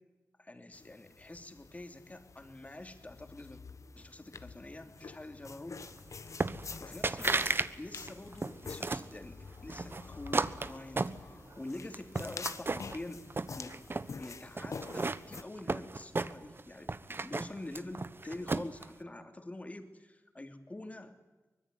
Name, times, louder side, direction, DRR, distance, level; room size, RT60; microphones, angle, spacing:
voice 1, 0.4-3.6 3.9-5.8 6.8-21.2, left 1 dB, 25° left, 7 dB, 2.9 m, -46 dB
sound 1, 0.7-15.4, left 4 dB, 70° left, 1.4 m, -47 dB
sound 2, 6.4-6.8 7.0-7.7 8.0-9.1 9.7-11.6 11.9-13.0 13.3-14.1 14.6-16.6 16.9-18.8, right 3 dB, 45° right, 1.2 m, -33 dB
24.5 x 21.5 x 9.5 m, 1.2 s
wide cardioid pair, 100°, 6 cm